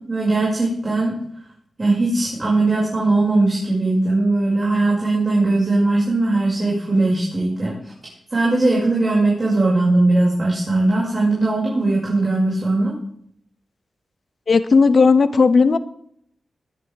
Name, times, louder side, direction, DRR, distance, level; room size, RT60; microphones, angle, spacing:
voice 1, 0.1-1.1 1.8-7.7 8.3-12.9, right 2 dB, 35° right, -5 dB, 6.0 m, -19 dB
voice 2, 14.5-15.8, left 4 dB, 60° left, 13 dB, 0.9 m, -14 dB
21.0 x 9.7 x 3.6 m, 0.68 s
cardioid pair, 55°, 0 cm